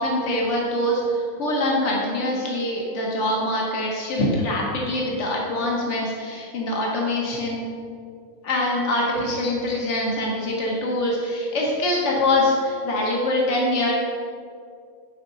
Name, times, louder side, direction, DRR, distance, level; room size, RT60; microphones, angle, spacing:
voice 1, 0.0-7.7 8.4-13.9, left 1 dB, 55° left, -2 dB, 1.6 m, -24 dB
10.0 x 5.3 x 4.0 m, 2.3 s
omnidirectional pair, 1.5 m